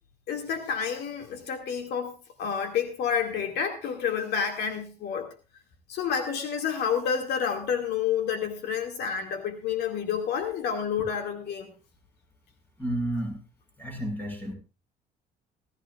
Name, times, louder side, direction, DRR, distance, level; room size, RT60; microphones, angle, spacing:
voice 1, 0.3-5.3 5.9-11.7, left 7 dB, 75° left, 4 dB, 2.3 m, -29 dB
voice 2, 12.8-13.4 13.8-14.5, right 1 dB, 10° left, 3 dB, 5.7 m, -31 dB
17.5 x 14.5 x 2.5 m, 0.32 s
cardioid pair, 110°, 17 cm